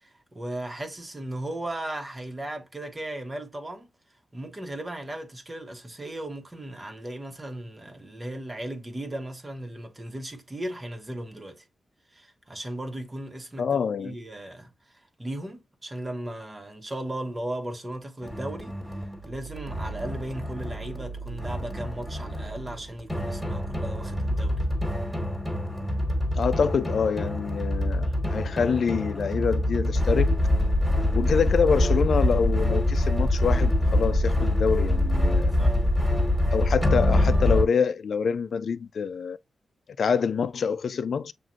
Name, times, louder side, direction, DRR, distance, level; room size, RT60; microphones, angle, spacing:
voice 1, 0.0-3.9 4.3-11.6 12.1-13.7 14.0-18.8 19.2-24.6 28.0-28.2 35.5-35.8, right 1 dB, 25° right, 1.1 m, -36 dB
voice 2, 13.6-14.1 26.3-30.4 31.1-35.5 36.5-39.4 40.0-41.3, left 6 dB, 65° left, 0.4 m, -26 dB
sound 1, 18.2-37.6, left 1 dB, ahead, 1.7 m, -25 dB
sound 2, 19.1-24.7, right 4 dB, 45° right, 0.8 m, -40 dB
7.4 x 2.5 x 2.5 m
wide cardioid pair, 100°, 0 cm